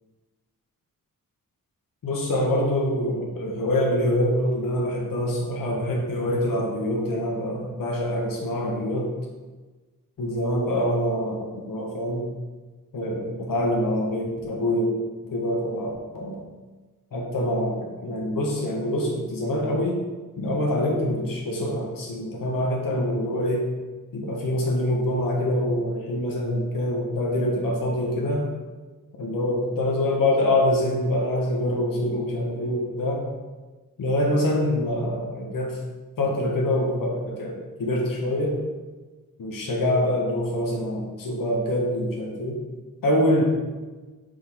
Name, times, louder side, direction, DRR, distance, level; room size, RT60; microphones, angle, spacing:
voice 1, 2.0-9.1 10.2-12.3 12.9-14.9 15.2-16.4 17.1-20.0 20.4-23.6 24.1-28.5 29.2-33.3 34.0-35.8 36.2-38.6 39.4-42.6 43.0-43.4, left 1 dB, 70° left, -2 dB, 1.1 m, -25 dB
5.6 x 5.2 x 3.5 m, 1.3 s
wide cardioid pair, 125°, 34 cm